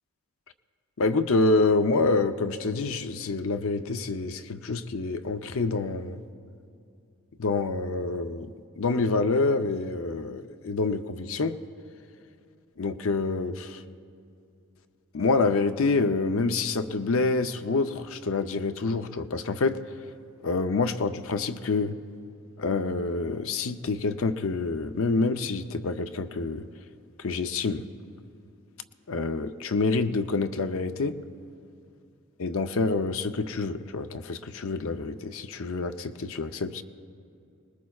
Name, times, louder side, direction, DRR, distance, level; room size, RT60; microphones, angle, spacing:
voice 1, 1.0-6.2 7.4-11.6 12.8-13.8 15.1-19.8 20.4-22.0 22.6-26.7 27.2-27.9 29.1-31.2 32.4-36.8, left 3 dB, 60° left, 9 dB, 0.6 m, -27 dB
24.5 x 20.0 x 2.3 m, 2.6 s
head